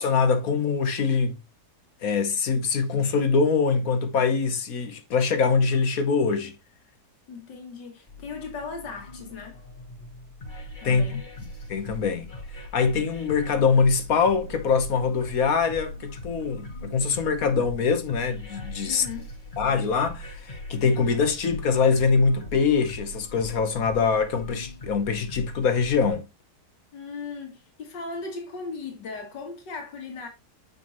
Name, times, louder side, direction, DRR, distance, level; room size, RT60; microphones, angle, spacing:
voice 1, 0.0-1.4 2.0-6.5 10.8-11.2 11.7-12.3 12.7-19.0 19.6-26.2, left 5 dB, 60° left, 1.5 m, -23 dB
voice 2, 7.3-9.6 10.8-11.2 18.9-19.3 26.9-30.3, left 4 dB, 85° left, 2.3 m, -37 dB
sound 1, 8.1-26.1, left 1 dB, 30° left, 1.4 m, -40 dB
7.7 x 5.4 x 3.0 m
omnidirectional pair, 1.8 m